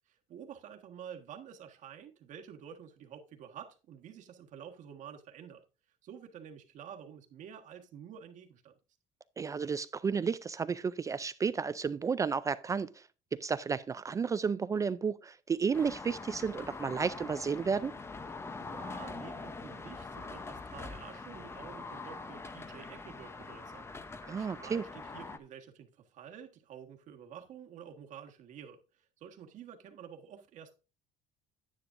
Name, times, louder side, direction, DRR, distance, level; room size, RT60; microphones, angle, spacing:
voice 1, 0.1-5.6 6.0-8.7 18.6-23.9 24.3-28.8 29.2-30.7, right 8 dB, 55° right, 1.5 m, -49 dB
voice 2, 9.4-13.0 13.3-17.9 24.3-24.8, right 5 dB, 20° right, 0.3 m, -32 dB
sound 1, 15.7-25.4, left 3 dB, 15° left, 0.7 m, -44 dB
9.8 x 9.8 x 2.5 m
cardioid pair, 140°, 15 cm